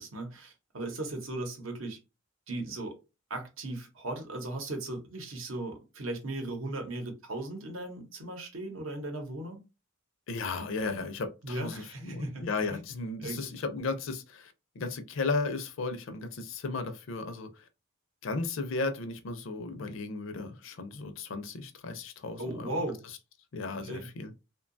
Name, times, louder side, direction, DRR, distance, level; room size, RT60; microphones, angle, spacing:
voice 1, 0.0-2.0 2.5-3.0 3.3-9.6 11.4-12.5 12.7-12.8 13.2-13.4 22.4-23.0 23.8-24.1, right 2 dB, 70° right, 0.8 m, -37 dB
voice 2, 10.3-17.6 18.2-22.8 23.5-24.3, left 3 dB, 65° left, 0.4 m, -35 dB
2.7 x 2.2 x 2.5 m
head